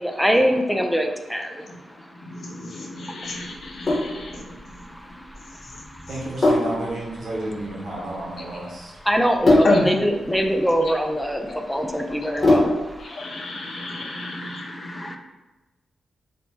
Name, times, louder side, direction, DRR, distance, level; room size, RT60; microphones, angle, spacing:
voice 1, 0.0-2.1 3.2-6.1 9.0-15.2, equal, 5° left, 4 dB, 0.3 m, -26 dB
voice 2, 2.2-4.6 5.7-5.8 9.6-9.9 11.5-11.6 13.0-15.2, left 2 dB, 70° left, 0 dB, 0.5 m, -28 dB
Sink (filling or washing), 3.6-13.0, left 2 dB, 40° left, 0.9 m, -24 dB
voice 3, 6.1-8.9, right 1 dB, 70° right, -4 dB, 0.9 m, -31 dB
2.7 x 2.1 x 3.1 m, 1.1 s
supercardioid pair, 55°, 0 cm